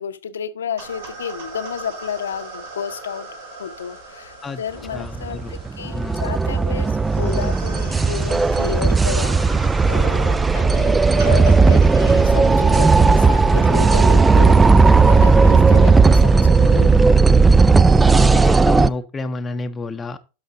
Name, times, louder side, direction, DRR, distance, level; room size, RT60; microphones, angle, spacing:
voice 1, 0.0-3.3 3.6-17.0, left 7 dB, 65° left, 0.8 m, -31 dB
sound 1, 0.8-18.2, right 3 dB, 65° right, 4.2 m, -39 dB
voice 2, 4.9-5.5 5.9-6.5 18.1-20.2, left 3 dB, 15° left, 0.7 m, -29 dB
sound 2, 5.0-18.9, right 4 dB, 10° right, 0.3 m, -14 dB
12.0 x 5.8 x 3.7 m
figure-of-eight pair, 90°, 0 cm